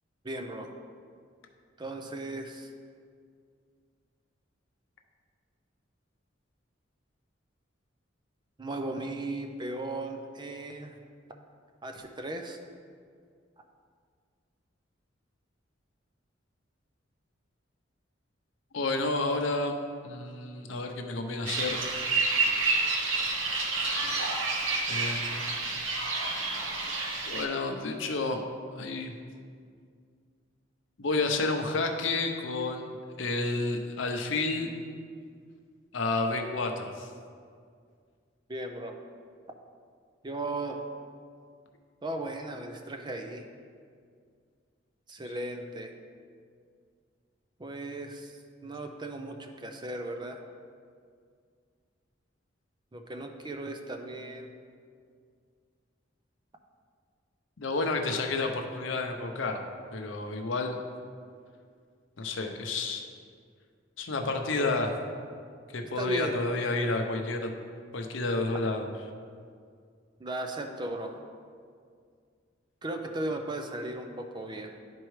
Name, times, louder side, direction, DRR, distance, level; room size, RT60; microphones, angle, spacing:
voice 1, 0.2-0.7 1.8-2.7 8.6-11.0 11.8-12.6 38.5-39.0 40.2-40.8 42.0-43.5 45.1-45.9 47.6-48.3 48.6-50.4 52.9-54.5 64.6-64.7 66.0-66.4 70.2-71.2 72.8-74.7, right 2 dB, 25° right, 4 dB, 0.5 m, -36 dB
voice 2, 18.7-19.8 20.0-21.9 24.9-25.4 27.3-28.4 28.7-29.2 31.0-34.7 35.9-37.1 57.6-59.6 59.9-60.8 62.2-63.0 64.0-64.9 65.7-67.5 67.9-68.9, left 3 dB, 75° left, 4 dB, 0.7 m, -30 dB
sound 1, 21.4-27.4, right 3 dB, 85° right, 0.9 m, -29 dB
11.5 x 4.5 x 3.2 m, 2.1 s
head